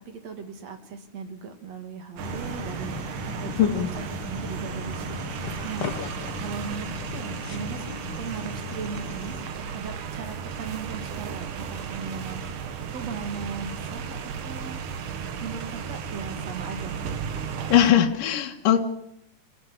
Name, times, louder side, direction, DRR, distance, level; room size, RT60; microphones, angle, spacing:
voice 1, 0.1-3.9 4.3-5.2 5.6-5.9 6.4-12.4 12.9-14.8 15.3-17.0, right 5 dB, 50° right, 7 dB, 3.4 m, -38 dB
sound 1, 2.2-9.5, left 6 dB, 50° left, 2.1 m, -38 dB
sound 2, 2.2-17.9, right 6 dB, 70° right, 3.1 m, -34 dB
voice 2, 3.6-3.9 6.0-6.1 17.7-18.9, left 10 dB, 75° left, 3 dB, 3.0 m, -20 dB
27.0 x 14.0 x 9.8 m, 0.76 s
omnidirectional pair, 3.9 m